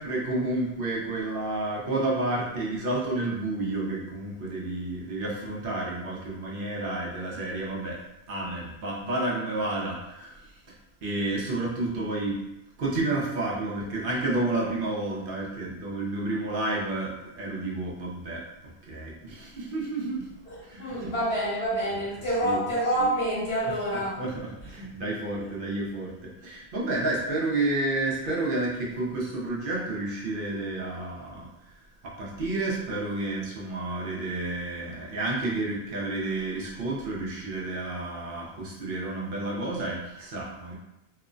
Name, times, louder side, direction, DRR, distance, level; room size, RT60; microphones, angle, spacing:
voice 1, 0.0-8.0 8.3-10.7 11.0-12.4 12.8-18.4 18.9-20.3 20.6-21.1 22.4-22.6 23.9-31.5 32.0-40.7, right 2 dB, 60° right, -4 dB, 0.8 m, -30 dB
voice 2, 20.5-24.2, right 1 dB, 70° left, -9 dB, 1.4 m, -27 dB
3.0 x 2.1 x 2.4 m, 0.89 s
omnidirectional pair, 1.1 m